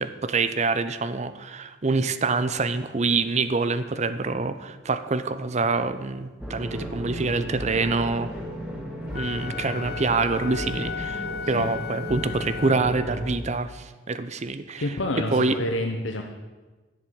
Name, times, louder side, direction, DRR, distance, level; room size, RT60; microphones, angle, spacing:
voice 1, 0.0-8.3 9.1-14.9 15.3-15.6, right 3 dB, 35° right, 12 dB, 0.7 m, -26 dB
sound 1, 6.4-13.3, equal, 5° right, 1.8 m, -35 dB
Wind instrument woodwind instrument, 9.0-13.4, left 7 dB, 55° left, 0.5 m, -36 dB
voice 2, 14.8-16.2, left 1 dB, 80° left, 3 dB, 1.0 m, -28 dB
12.0 x 7.5 x 7.8 m, 1.3 s
head